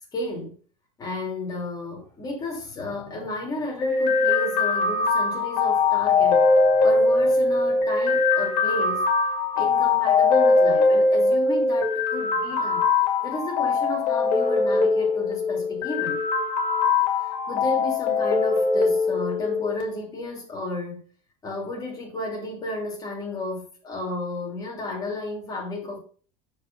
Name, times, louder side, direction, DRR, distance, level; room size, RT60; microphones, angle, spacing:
voice 1, 0.1-0.5 1.0-9.0 9.5-12.8 13.2-16.2 17.5-21.0 21.4-26.0, left 2 dB, 20° left, -1 dB, 2.7 m, -32 dB
sound 1, 3.8-19.8, left 3 dB, 45° left, 2.2 m, -21 dB
6.8 x 4.4 x 5.3 m, 0.42 s
cardioid pair, 160°, 18 cm